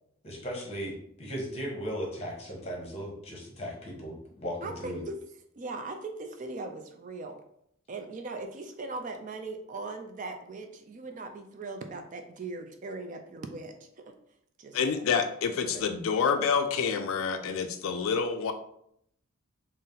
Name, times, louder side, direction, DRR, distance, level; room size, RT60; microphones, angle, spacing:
voice 1, 0.2-5.0 15.7-15.8, equal, 30° left, -1 dB, 0.9 m, -37 dB
voice 2, 4.6-5.2 5.6-7.4 7.9-14.1 14.6-15.0, right 3 dB, 35° right, 5 dB, 0.3 m, -39 dB
voice 3, 14.7-18.5, left 6 dB, 75° left, 7 dB, 0.3 m, -28 dB
4.0 x 2.1 x 3.8 m, 0.71 s
head